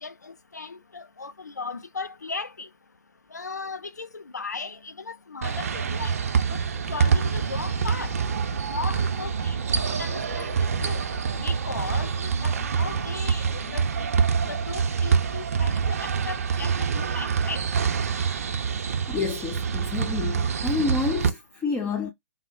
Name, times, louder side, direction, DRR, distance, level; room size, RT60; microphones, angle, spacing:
voice 1, 0.0-2.7 3.3-6.1 6.5-6.6 6.9-8.1 8.7-10.6 10.8-11.0 11.4-13.9 14.4-17.6, left 4 dB, 80° left, 0.5 m, -37 dB
sound 1, 5.4-21.3, right 6 dB, 55° right, 0.5 m, -26 dB
sound 2, 6.8-14.2, left 7 dB, 55° left, 2.1 m, -44 dB
voice 2, 19.1-22.1, left 4 dB, 10° left, 0.3 m, -29 dB
3.8 x 2.0 x 2.5 m
figure-of-eight pair, 120°, 9 cm